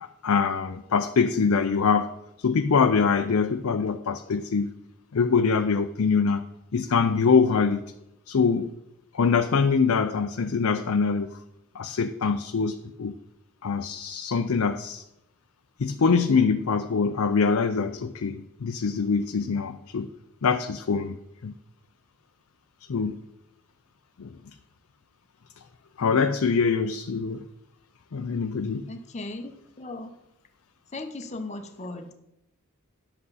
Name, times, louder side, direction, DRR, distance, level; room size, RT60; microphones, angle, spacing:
voice 1, 0.2-2.1 2.4-4.7 5.1-6.4 6.7-7.9 8.3-8.7 9.1-11.4 11.7-13.2 13.6-15.0 15.8-20.1 20.4-21.2 21.4-21.5 22.9-23.2 24.2-24.4 26.0-27.4 28.1-28.8, left 5 dB, 65° left, 7 dB, 0.5 m, -24 dB
voice 2, 28.9-30.1 30.9-32.1, left 2 dB, 30° left, 6 dB, 0.8 m, -37 dB
11.0 x 7.7 x 4.1 m, 0.85 s
head